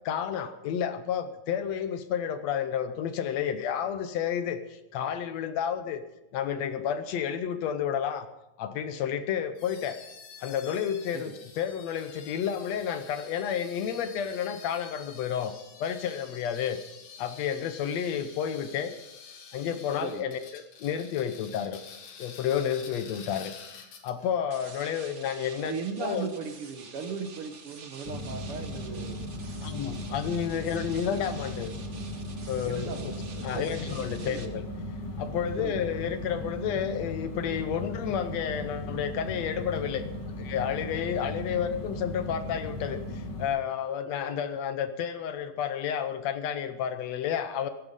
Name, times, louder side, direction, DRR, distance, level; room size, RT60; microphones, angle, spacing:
voice 1, 0.1-6.0 6.3-8.3 8.6-10.0 10.4-15.5 15.8-16.8 17.2-19.0 19.5-21.8 22.2-25.7 26.0-26.3 29.6-31.7 32.5-33.1 33.4-34.6 35.2-40.1 40.4-47.7, left 8 dB, 70° left, 10 dB, 1.9 m, -31 dB
sound 1, 9.5-24.4, left 6 dB, 85° left, 3.1 m, -48 dB
sound 2, 24.5-34.5, right 5 dB, 90° right, 0.6 m, -48 dB
voice 2, 25.6-29.2 32.7-34.0 34.2-34.5 35.6-35.9, right 5 dB, 65° right, 6 dB, 1.6 m, -37 dB
sound 3, 28.1-43.5, left 1 dB, 45° left, 1.9 m, -37 dB
16.0 x 11.5 x 5.4 m, 0.93 s
omnidirectional pair, 3.3 m